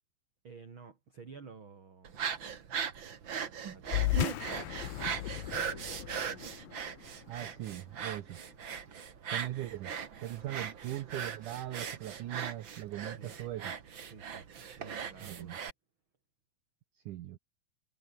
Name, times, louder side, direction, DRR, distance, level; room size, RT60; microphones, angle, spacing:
voice 1, 0.4-2.2 3.7-6.7 13.2-13.4 14.1-14.5 14.8-15.7, right 5 dB, 30° right, 3.3 m, -52 dB
sound 1, 2.0-15.7, right 7 dB, 55° right, 1.4 m, -39 dB
sound 2, 3.9-8.7, left 18 dB, 85° left, 2.0 m, -36 dB
voice 2, 7.3-8.4 9.3-9.9 10.2-13.8 15.2-15.6 17.1-17.4, right 14 dB, 80° right, 1.8 m, -40 dB
omnidirectional pair, 5.0 m